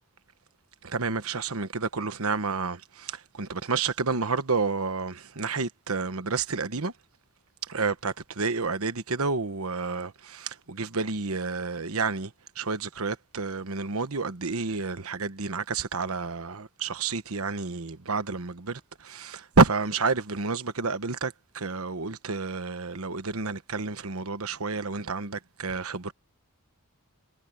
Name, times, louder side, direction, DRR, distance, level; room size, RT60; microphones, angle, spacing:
voice 1, 0.8-6.9 7.7-12.3 12.6-26.1, right 4 dB, 70° right, 1.2 m, -29 dB
head